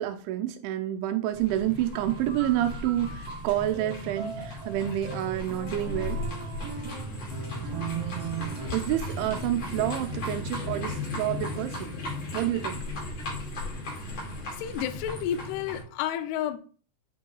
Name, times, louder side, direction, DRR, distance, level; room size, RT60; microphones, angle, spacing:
voice 1, 0.0-6.2 8.7-11.9 12.3-12.8, right 13 dB, 90° right, 3.0 m, -29 dB
sound 1, 1.3-15.8, left 2 dB, 45° left, 2.5 m, -36 dB
sound 2, 1.9-9.0, right 7 dB, 65° right, 3.1 m, -39 dB
voice 2, 14.6-16.6, left 10 dB, 90° left, 2.3 m, -31 dB
7.9 x 5.8 x 2.3 m
omnidirectional pair, 5.3 m